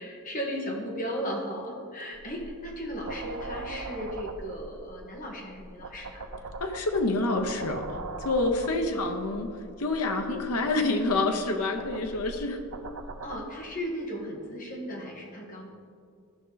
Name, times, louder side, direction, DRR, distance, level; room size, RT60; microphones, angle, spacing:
voice 1, 0.0-6.2 8.7-9.0 13.2-15.7, equal, 40° left, -1 dB, 1.5 m, -36 dB
sound 1, 2.1-13.4, right 3 dB, 75° right, 0.6 m, -41 dB
voice 2, 6.6-9.5 9.8-12.6, left 2 dB, 85° left, 5 dB, 0.8 m, -27 dB
13.5 x 5.3 x 3.9 m, 2.2 s
head